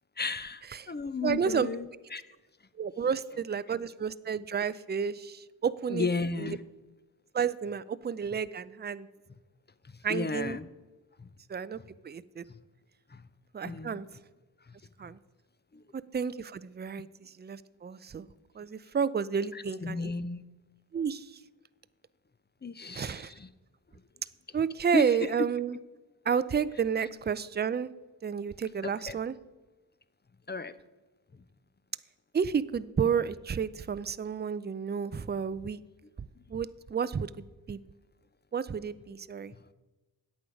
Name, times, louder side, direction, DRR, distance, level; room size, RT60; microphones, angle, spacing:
voice 1, 0.2-2.3 5.9-6.6 9.8-10.7 11.2-11.3 12.5-12.6 13.1-13.3 13.6-14.1 14.6-15.1 15.7-15.8 19.5-20.4 22.6-23.5 23.9-24.0 24.9-25.5 28.8-29.2 30.5-30.8 31.3-31.4 36.4-36.5 39.5-39.6, left 3 dB, 25° left, 14 dB, 0.6 m, -35 dB
voice 2, 1.2-1.7 2.8-6.1 6.4-6.5 7.3-9.1 10.0-10.6 11.5-11.8 12.0-12.4 13.5-14.0 15.0-15.2 15.9-18.3 18.6-20.1 20.9-21.4 22.9-23.3 24.5-25.8 26.3-27.9 28.2-29.3 32.3-35.8 36.5-37.8 38.5-39.5, right 7 dB, 25° right, 17 dB, 0.5 m, -31 dB
10.0 x 8.5 x 5.2 m, 1.2 s
supercardioid pair, 40°, 44 cm